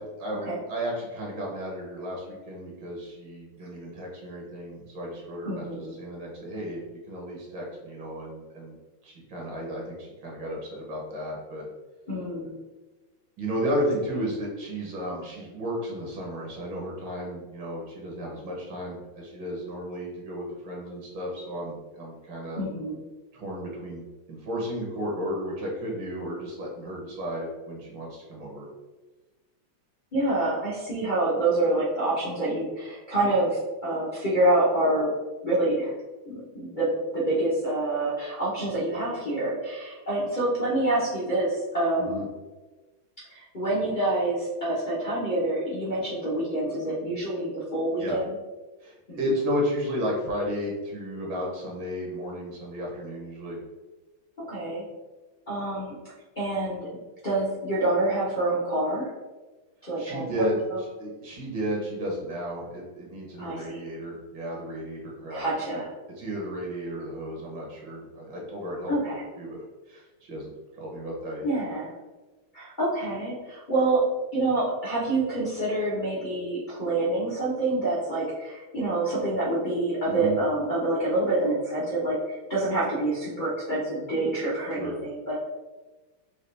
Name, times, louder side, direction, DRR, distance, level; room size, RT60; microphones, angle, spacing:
voice 1, 0.0-8.7 9.0-11.7 13.4-22.6 23.3-24.0 24.3-28.7 42.0-42.3 48.0-48.2 48.8-53.6 60.0-60.6 61.0-65.4 65.7-65.8 66.2-68.9 69.4-69.6 69.9-71.6 80.1-80.4 84.7-84.9, equal, 60° right, -2 dB, 1.5 m, -33 dB
voice 2, 5.4-5.9 12.1-12.6 22.6-23.0 30.1-35.1 35.4-35.9 36.3-42.2 43.3-48.3 49.1-49.2 54.4-54.8 55.5-55.9 56.4-56.9 57.2-59.1 59.8-60.8 63.4-63.8 65.3-65.9 68.9-69.2 71.4-71.9 72.5-74.0 74.3-85.4, right 2 dB, 65° left, -10 dB, 0.4 m, -27 dB
5.4 x 2.4 x 3.3 m, 1.2 s
omnidirectional pair, 2.4 m